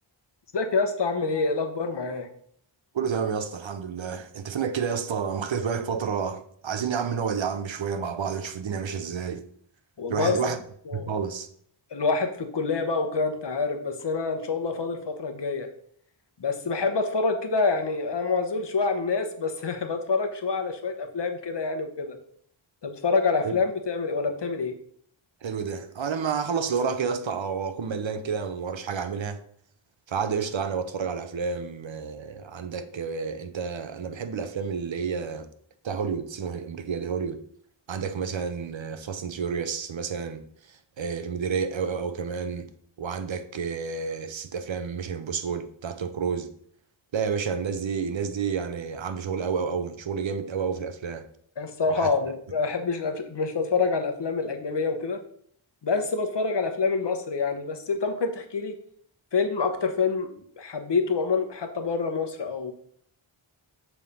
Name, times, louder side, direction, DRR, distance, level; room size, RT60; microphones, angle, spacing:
voice 1, 0.5-2.3 10.0-10.3 10.9-11.1 11.9-15.7 16.4-22.2 22.8-24.7 51.6-55.2 55.8-58.7 59.3-62.7, left 4 dB, 55° left, 1.1 m, -27 dB
voice 2, 2.9-9.4 10.1-10.6 10.9-11.5 23.4-23.5 25.4-29.4 30.1-35.5 35.8-37.4 37.9-42.7 43.0-46.5 47.1-51.3 51.9-52.1, right 6 dB, 65° right, 0.8 m, -30 dB
7.2 x 3.7 x 5.5 m
wide cardioid pair, 70°, 49 cm